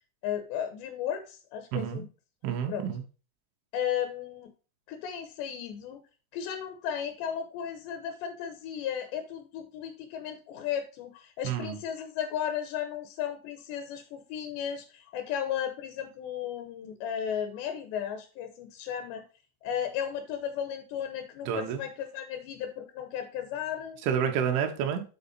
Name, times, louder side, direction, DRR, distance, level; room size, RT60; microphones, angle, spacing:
voice 1, 0.2-2.1 2.7-2.9 3.7-4.5 4.9-6.0 6.3-19.2 19.6-24.0, left 9 dB, 80° left, 7 dB, 2.8 m, -35 dB
voice 2, 1.7-2.0 2.4-3.0 11.4-11.7 21.5-21.8 24.0-25.0, right 8 dB, 85° right, 4 dB, 3.5 m, -29 dB
9.8 x 4.2 x 4.1 m, 0.35 s
omnidirectional pair, 5.4 m